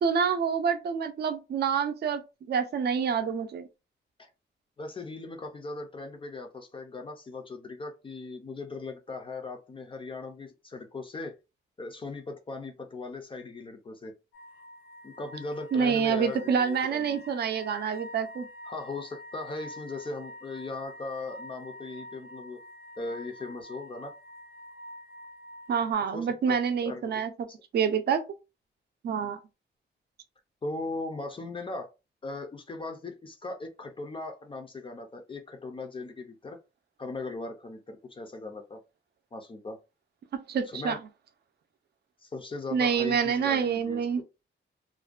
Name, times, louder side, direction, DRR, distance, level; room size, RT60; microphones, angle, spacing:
voice 1, 0.0-2.2 2.5-3.6 15.7-18.5 25.7-27.3 27.7-28.2 29.0-29.4 40.5-41.0 42.7-44.2, right 6 dB, 55° right, 0.4 m, -27 dB
voice 2, 4.8-11.3 11.8-14.1 15.0-17.2 18.6-22.6 23.0-24.1 26.0-27.2 27.5-27.6 29.2-29.3 30.6-31.9 32.2-36.6 37.0-38.8 39.3-39.8 40.6-41.0 42.2-44.1, left 3 dB, 25° left, 0.4 m, -38 dB
sound 1, 14.3-25.9, left 1 dB, 85° left, 0.6 m, -47 dB
2.5 x 2.1 x 2.3 m
wide cardioid pair, 155°, 20 cm